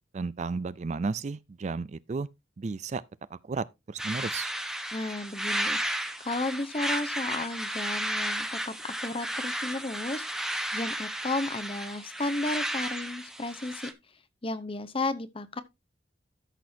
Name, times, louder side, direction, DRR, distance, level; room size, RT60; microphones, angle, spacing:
voice 1, 0.1-2.3 2.6-3.0 3.3-4.5, right 4 dB, 40° right, 0.4 m, -33 dB
sound 1, 4.0-13.9, right 1 dB, 5° right, 0.9 m, -33 dB
voice 2, 4.9-5.8 6.2-13.9 14.4-15.6, left 2 dB, 30° left, 0.8 m, -33 dB
13.5 x 6.1 x 2.7 m
head